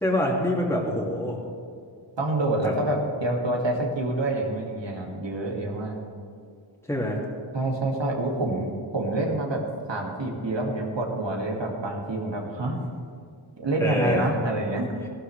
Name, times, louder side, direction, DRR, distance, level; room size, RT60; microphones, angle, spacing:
voice 1, 0.0-1.4 2.6-2.7 6.9-7.2 13.8-14.3, left 1 dB, 5° left, -3 dB, 2.2 m, -25 dB
voice 2, 2.2-6.0 7.5-9.6 9.9-12.8 13.6-14.9, right 2 dB, 65° right, 0 dB, 2.1 m, -27 dB
16.0 x 12.0 x 3.3 m, 2.2 s
cardioid pair, 50°, 47 cm